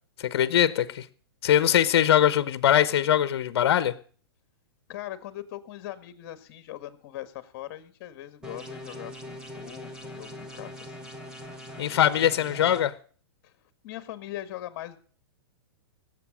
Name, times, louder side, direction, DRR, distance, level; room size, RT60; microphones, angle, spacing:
voice 1, 0.2-1.0 1.4-3.9 11.8-12.9, left 10 dB, 65° left, 1.1 m, -22 dB
voice 2, 4.9-11.1 13.4-13.5 13.8-15.0, left 13 dB, 40° left, 1.8 m, -40 dB
sound 1, 8.4-12.8, left 1 dB, 5° right, 1.6 m, -42 dB
19.0 x 8.2 x 6.3 m
hypercardioid pair, 155°, 14 cm